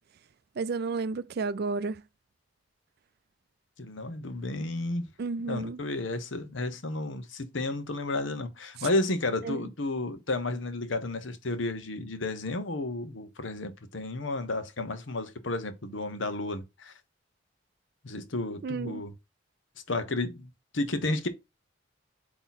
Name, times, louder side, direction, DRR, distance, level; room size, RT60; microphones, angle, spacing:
voice 1, 0.6-2.0 5.2-5.8 8.8-8.9 9.4-9.7 18.6-19.0, right 4 dB, 55° right, 0.4 m, -32 dB
voice 2, 3.8-5.1 5.5-16.9 18.0-19.1 19.9-21.3, left 2 dB, 75° left, 1.0 m, -32 dB
8.2 x 3.0 x 4.0 m
head